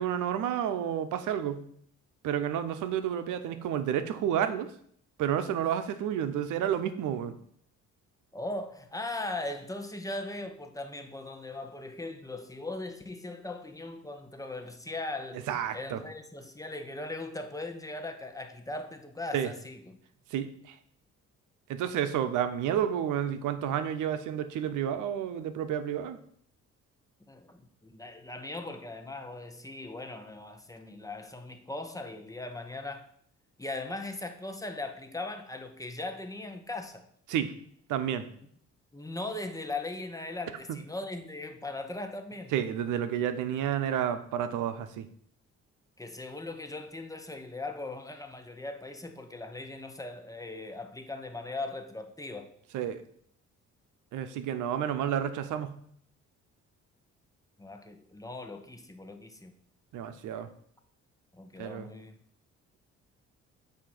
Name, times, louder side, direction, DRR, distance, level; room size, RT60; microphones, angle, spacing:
voice 1, 0.0-1.7 2.2-4.7 5.2-7.4 15.5-16.0 19.3-19.5 20.3-20.8 21.7-26.2 37.3-37.5 37.9-38.3 40.7-40.8 42.5-45.1 52.7-53.0 54.1-55.8 59.9-60.5 61.6-61.9, right 9 dB, 85° right, 10 dB, 0.7 m, -30 dB
voice 2, 8.3-15.4 15.7-20.0 27.3-33.1 33.6-37.1 38.9-42.5 46.0-52.5 57.6-59.5 61.3-62.2, left 2 dB, 10° left, 6 dB, 0.9 m, -39 dB
8.3 x 2.8 x 6.0 m, 0.62 s
cardioid pair, 90°, 30 cm